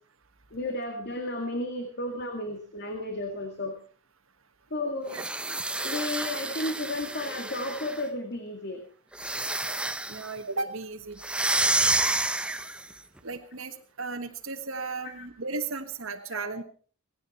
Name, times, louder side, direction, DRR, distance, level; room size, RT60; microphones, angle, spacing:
voice 1, 0.5-3.8 4.7-5.2 5.8-8.8 15.0-15.3 16.3-16.4, left 1 dB, 55° left, 5 dB, 2.2 m, -33 dB
sound 1, 5.1-8.1 9.1-10.3 11.2-12.9, right 2 dB, 5° right, 0.7 m, -29 dB
voice 2, 10.1-11.2 13.2-16.6, right 3 dB, 70° right, 4 dB, 1.4 m, -35 dB
18.0 x 16.0 x 4.3 m, 0.40 s
head